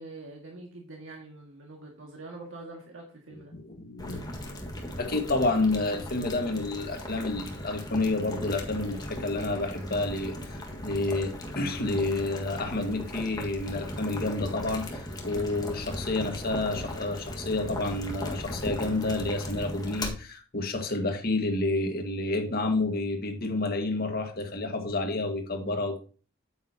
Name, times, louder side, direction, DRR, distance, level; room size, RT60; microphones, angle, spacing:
voice 1, 0.0-3.5, right 2 dB, 75° right, 0 dB, 2.0 m, -44 dB
voice 2, 3.3-4.2 5.0-26.0, left 2 dB, 50° left, 4 dB, 1.8 m, -29 dB
Boiling, 4.0-20.1, left 1 dB, 20° left, 1.7 m, -38 dB
8.9 x 8.8 x 2.8 m, 0.37 s
head